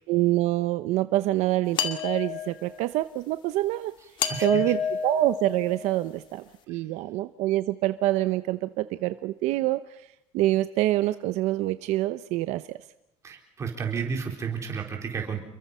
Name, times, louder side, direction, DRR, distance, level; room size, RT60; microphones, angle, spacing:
voice 1, 0.1-3.9 4.4-9.8 10.3-12.6, right 16 dB, 70° right, 12 dB, 0.8 m, -26 dB
sound 1, 1.8-2.9 4.2-6.1, left 8 dB, 40° left, 2.2 m, -31 dB
voice 2, 4.3-4.6 13.2-15.4, right 6 dB, 25° right, 2 dB, 4.2 m, -32 dB
29.0 x 23.0 x 5.6 m, 0.83 s
cardioid pair, 170°, 12 cm